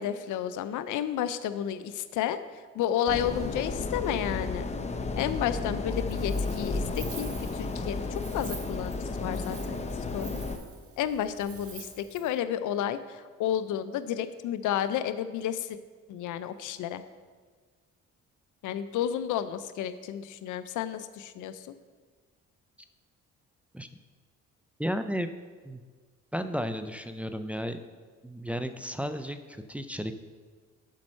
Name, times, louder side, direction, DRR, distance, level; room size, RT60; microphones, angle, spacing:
voice 1, 0.0-4.7 5.2-9.9 10.1-10.4 11.0-15.8 16.1-17.0 18.6-21.7, left 10 dB, 80° left, 12 dB, 0.6 m, -32 dB
sound 1, 3.1-10.6, left 3 dB, 20° left, 0.8 m, -33 dB
Wind, 5.9-12.4, right 5 dB, 50° right, 1.4 m, -48 dB
voice 2, 24.8-25.3 25.6-25.8 26.3-27.8 28.2-30.1, equal, 5° right, 8 dB, 0.4 m, -33 dB
7.6 x 5.4 x 6.4 m, 1.5 s
cardioid pair, 90°, 30 cm